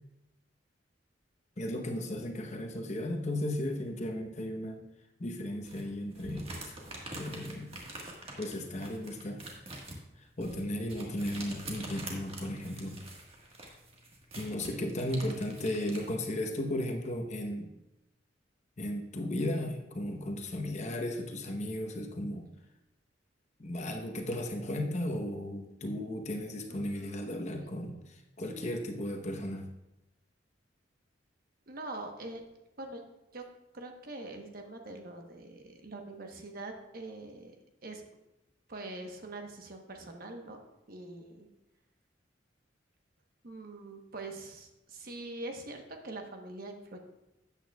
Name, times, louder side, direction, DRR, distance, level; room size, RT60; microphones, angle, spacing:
voice 1, 1.6-4.8 5.2-6.5 7.1-7.7 8.4-9.4 10.2-13.0 14.3-17.7 18.8-22.5 23.6-29.7, left 1 dB, 40° left, 3 dB, 1.0 m, -35 dB
sound 1, 5.6-16.1, right 2 dB, 30° right, 1.6 m, -45 dB
voice 2, 26.7-27.3 31.7-32.4 32.8-33.0 33.3-33.5 33.7-37.5 37.8-38.0 38.7-40.6 40.9-41.5 43.4-47.0, right 2 dB, 50° right, 3 dB, 1.1 m, -43 dB
13.0 x 8.4 x 2.4 m, 0.91 s
head